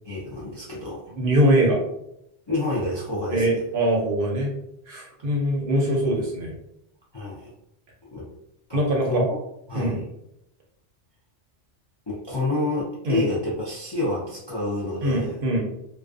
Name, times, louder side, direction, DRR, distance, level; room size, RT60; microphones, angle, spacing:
voice 1, 0.0-1.1 2.5-3.6 7.1-7.5 8.1-8.3 8.7-9.4 9.7-10.0 12.1-15.4, left 2 dB, 40° left, -6 dB, 0.4 m, -28 dB
voice 2, 1.1-1.8 3.3-4.5 4.9-6.5 8.7-9.3 9.7-10.0 13.1-13.2 15.0-15.6, right 1 dB, 60° right, -1 dB, 0.7 m, -22 dB
2.4 x 2.2 x 2.4 m, 0.78 s
omnidirectional pair, 1.2 m